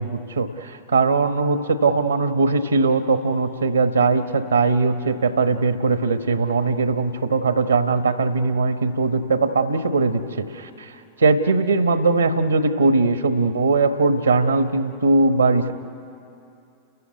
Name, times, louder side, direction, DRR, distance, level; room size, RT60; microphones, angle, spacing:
voice 1, 0.0-10.9 11.2-15.7, right 3 dB, 75° right, 10 dB, 1.1 m, -20 dB
30.0 x 14.0 x 9.5 m, 2.6 s
figure-of-eight pair, 90°, 0 cm